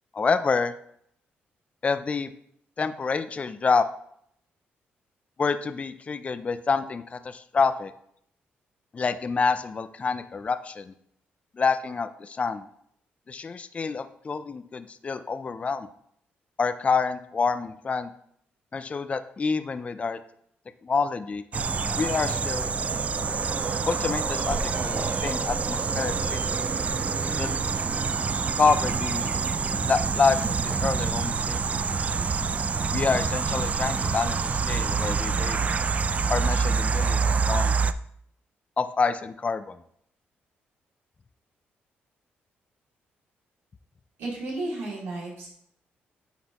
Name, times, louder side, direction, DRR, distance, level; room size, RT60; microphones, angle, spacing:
voice 1, 0.1-0.7 1.8-2.3 2.8-3.9 5.4-7.9 8.9-10.9 11.6-12.6 13.3-15.9 16.6-18.1 18.7-20.2 20.8-21.4 22.0-22.7 23.9-26.5 27.4-27.5 28.6-29.3 29.8-31.9 32.9-35.6 36.3-37.2 37.5-37.7 38.8-39.8, left 5 dB, 35° left, 11 dB, 0.4 m, -27 dB
sound 1, 21.5-37.9, right 5 dB, 35° right, 0.3 m, -26 dB
voice 2, 44.2-45.5, right 2 dB, 85° right, -5 dB, 2.6 m, -33 dB
9.3 x 4.1 x 3.0 m, 0.70 s
cardioid pair, 85°, 4 cm